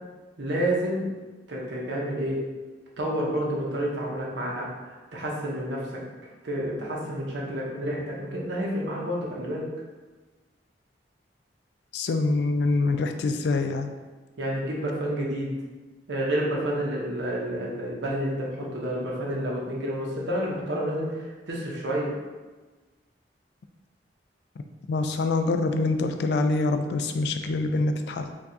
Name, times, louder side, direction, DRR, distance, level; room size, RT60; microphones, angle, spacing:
voice 1, 0.4-1.0 1.5-2.4 3.0-4.7 5.1-6.0 6.4-9.7 14.4-15.5 16.1-22.1, right 1 dB, 90° right, -3 dB, 0.8 m, -29 dB
voice 2, 11.9-13.9 24.9-28.3, left 3 dB, 65° left, 7 dB, 0.3 m, -25 dB
4.5 x 2.3 x 2.7 m, 1.3 s
head